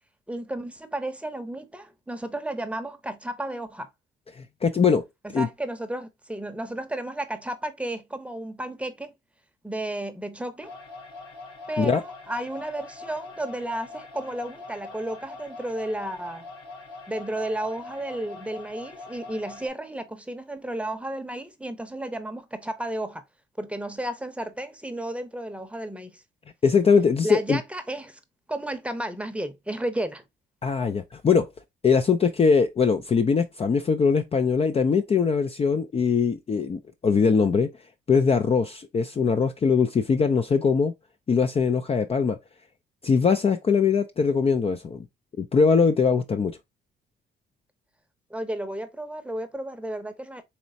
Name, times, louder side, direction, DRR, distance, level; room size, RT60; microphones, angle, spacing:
voice 1, 0.3-3.9 5.2-9.1 9.6-10.8 11.7-16.4 17.1-23.2 23.6-26.2 27.2-28.2 28.5-30.2 48.3-50.4, right 1 dB, 5° right, 0.8 m, -33 dB
voice 2, 4.4-5.0 5.3-5.5 11.8-12.0 26.6-27.6 30.6-31.5 31.8-37.7 38.1-40.9 41.3-42.4 43.0-45.1 45.4-46.6, left 5 dB, 30° left, 0.4 m, -21 dB
sound 1, 10.6-19.7, left 3 dB, 80° left, 3.0 m, -43 dB
4.2 x 3.1 x 2.6 m
cardioid pair, 90°, 20 cm